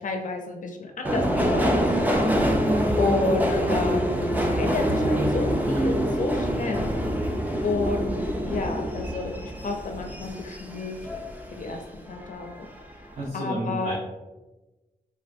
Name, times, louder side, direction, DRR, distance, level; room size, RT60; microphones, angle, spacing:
voice 1, 0.0-4.1 4.4-6.9 7.6-11.1 11.5-12.5 13.0-13.1 13.3-13.9, left 3 dB, 60° left, 2 dB, 0.4 m, -31 dB
Subway metro underground, 1.0-11.8 12.1-12.8 13.1-13.2, equal, 10° right, 0.3 m, -25 dB
voice 2, 13.1-13.9, right 1 dB, 45° right, -7 dB, 0.7 m, -31 dB
3.4 x 2.3 x 2.5 m, 1.1 s
wide cardioid pair, 130°, 15 cm